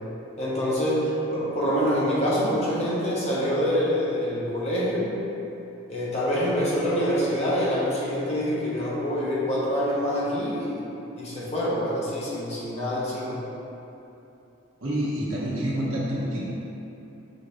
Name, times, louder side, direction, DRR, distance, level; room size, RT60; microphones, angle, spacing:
voice 1, 0.4-1.0 1.3-5.1 5.9-10.8 11.2-13.4, equal, 35° left, -8 dB, 0.9 m, -26 dB
voice 2, 14.8-16.5, right 1 dB, 80° right, -7 dB, 1.0 m, -27 dB
5.1 x 3.0 x 2.6 m, 2.9 s
head